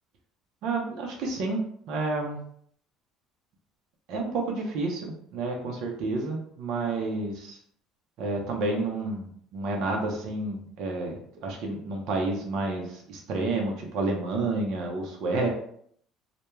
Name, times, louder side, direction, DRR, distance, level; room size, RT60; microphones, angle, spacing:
voice 1, 0.6-2.4 4.1-7.6 8.2-15.5, right 3 dB, 65° right, 1 dB, 0.5 m, -30 dB
2.2 x 2.1 x 3.1 m, 0.64 s
supercardioid pair, 95°, 0 cm